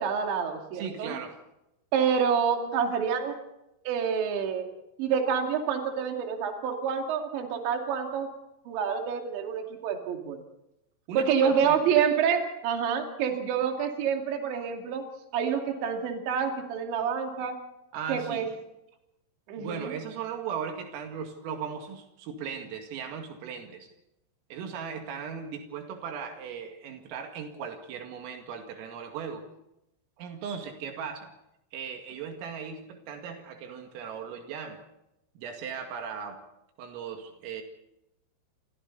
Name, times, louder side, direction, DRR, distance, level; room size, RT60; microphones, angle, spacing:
voice 1, 0.0-1.1 1.9-3.3 3.9-4.7 5.0-8.3 8.7-10.4 11.2-15.0 15.3-17.6 18.1-18.5 19.5-19.9, right 7 dB, 65° right, 3 dB, 4.6 m, -27 dB
voice 2, 0.7-1.4 11.1-11.9 17.9-18.5 19.6-23.9 24.5-29.5 30.2-31.3 31.7-34.8 35.4-36.5 36.8-37.6, right 7 dB, 85° right, 3 dB, 4.8 m, -37 dB
28.5 x 26.0 x 4.1 m, 0.87 s
omnidirectional pair, 5.8 m